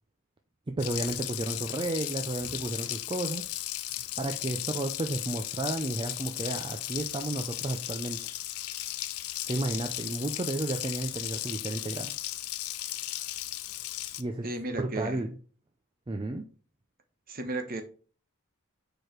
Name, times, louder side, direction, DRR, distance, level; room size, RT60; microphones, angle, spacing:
voice 1, 0.7-3.4 4.2-8.2 9.5-12.1 14.2-14.5 14.8-15.4 16.1-16.4, right 2 dB, 20° right, 5 dB, 0.4 m, -32 dB
Water tap faucet, 0.8-14.2, left 14 dB, 75° left, 0.5 m, -36 dB
voice 2, 14.4-15.2 17.3-17.8, right 2 dB, 40° right, 7 dB, 1.0 m, -34 dB
4.9 x 4.6 x 4.4 m, 0.39 s
head